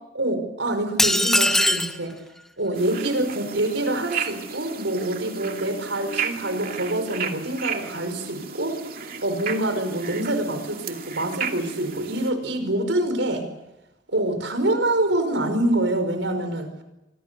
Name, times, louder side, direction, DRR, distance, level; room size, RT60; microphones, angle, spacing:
voice 1, 0.1-2.1 2.6-8.8 9.2-13.5 14.1-16.7, right 1 dB, 80° right, 8 dB, 5.3 m, -25 dB
sound 1, 1.0-2.0, left 1 dB, ahead, 1.0 m, -20 dB
sound 2, 2.7-12.3, right 6 dB, 50° right, 2.6 m, -34 dB
26.5 x 25.0 x 6.9 m, 0.94 s
head